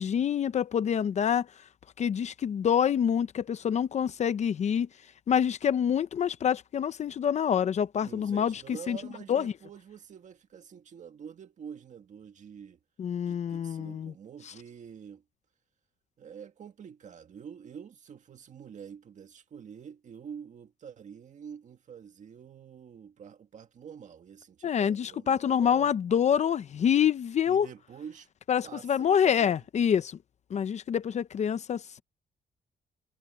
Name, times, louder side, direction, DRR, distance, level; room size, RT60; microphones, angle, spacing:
voice 1, 0.0-1.5 2.0-4.9 5.3-8.6 8.9-9.0 9.3-9.5 13.0-14.1 24.6-27.7 28.5-30.2 30.5-32.0, left 8 dB, 45° left, 0.6 m, -26 dB
voice 2, 8.0-12.8 13.2-15.2 16.2-25.9 27.5-28.3 28.6-29.6, right 7 dB, 50° right, 1.8 m, -47 dB
wide cardioid pair, 165°, 17 cm